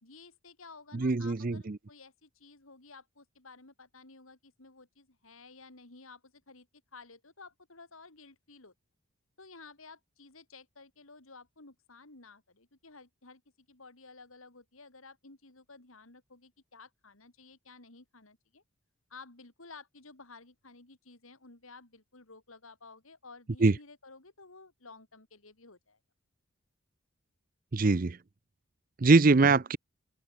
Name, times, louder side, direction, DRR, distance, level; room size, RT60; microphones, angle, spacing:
voice 1, 0.0-6.7 6.9-8.7 9.4-13.4 13.7-18.6 19.1-26.0, left 3 dB, 80° left, 3.1 m, -53 dB
voice 2, 0.9-1.8 23.6-23.8 27.7-28.2 29.0-29.8, right 3 dB, 40° right, 0.6 m, -23 dB
open air
head